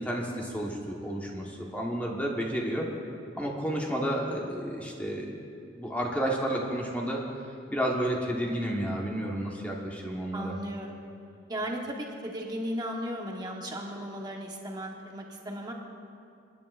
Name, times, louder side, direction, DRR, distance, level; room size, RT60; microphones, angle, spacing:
voice 1, 0.0-2.9 3.4-5.3 5.7-7.2 7.7-10.5, right 1 dB, 10° left, -2 dB, 1.3 m, -31 dB
voice 2, 10.3-11.0 11.5-15.7, equal, 20° right, -1 dB, 1.2 m, -36 dB
28.0 x 10.5 x 2.5 m, 2.4 s
head